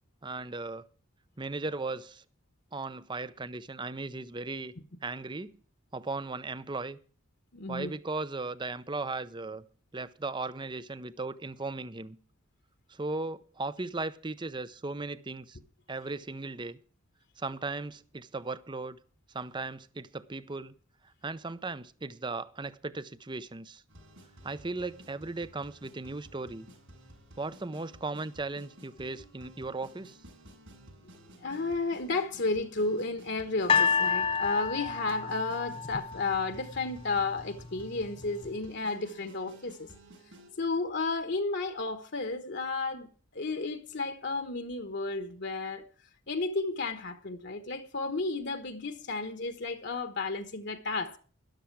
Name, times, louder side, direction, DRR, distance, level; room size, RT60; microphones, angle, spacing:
voice 1, 0.2-0.8 1.4-2.2 2.7-4.7 5.0-5.6 5.9-7.0 7.7-9.6 9.9-12.2 12.9-15.6 15.9-16.8 17.4-19.0 19.3-20.7 21.2-23.8 24.4-26.7 27.4-30.2, right 3 dB, 20° right, 0.6 m, -37 dB
voice 2, 7.5-7.9 31.4-39.9 40.6-43.1 43.3-45.8 46.3-51.2, left 3 dB, 55° left, 1.3 m, -32 dB
sound 1, 23.9-40.5, right 1 dB, 65° right, 6.6 m, -54 dB
sound 2, 33.7-36.9 37.6-37.7, left 6 dB, 25° left, 0.5 m, -29 dB
13.0 x 11.5 x 4.7 m
head